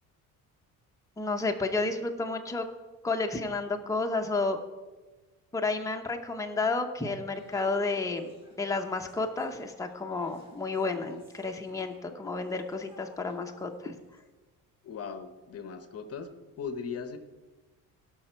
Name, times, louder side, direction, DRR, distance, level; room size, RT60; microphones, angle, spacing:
voice 1, 1.2-2.7 3.0-4.6 5.5-8.3 8.6-13.9, left 3 dB, 10° left, 3 dB, 0.8 m, -31 dB
sound 1, 7.3-14.2, left 2 dB, 15° right, 2.2 m, -55 dB
voice 2, 14.8-16.3 16.6-17.2, left 6 dB, 45° left, 10 dB, 0.9 m, -38 dB
17.5 x 6.0 x 4.4 m, 1.2 s
cardioid pair, 145°, 35 cm